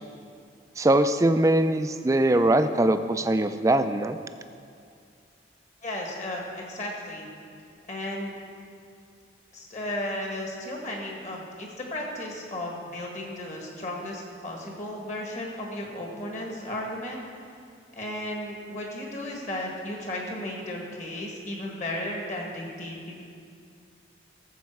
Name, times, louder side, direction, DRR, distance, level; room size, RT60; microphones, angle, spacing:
voice 1, 0.8-4.2, right 1 dB, 15° right, 9 dB, 0.3 m, -22 dB
voice 2, 5.8-7.3 7.9-8.3 9.5-17.2 18.0-23.2, left 1 dB, 40° left, -1 dB, 1.7 m, -34 dB
14.0 x 7.3 x 4.7 m, 2.4 s
head